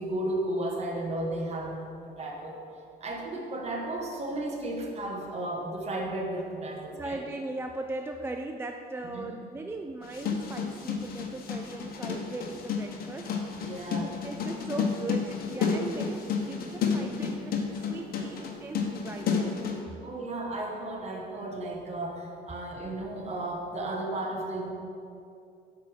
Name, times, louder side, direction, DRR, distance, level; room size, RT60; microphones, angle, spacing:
voice 1, 0.0-2.6 3.0-7.2 9.0-9.3 13.5-14.1 20.0-24.7, right 1 dB, 40° right, 1 dB, 1.4 m, -34 dB
voice 2, 7.0-13.3 13.6-19.4, right 2 dB, 15° right, 4 dB, 0.3 m, -39 dB
sound 1, 10.0-19.8, left 6 dB, 60° left, 1.1 m, -31 dB
8.2 x 4.3 x 6.2 m, 2.5 s
cardioid pair, 110°, 17 cm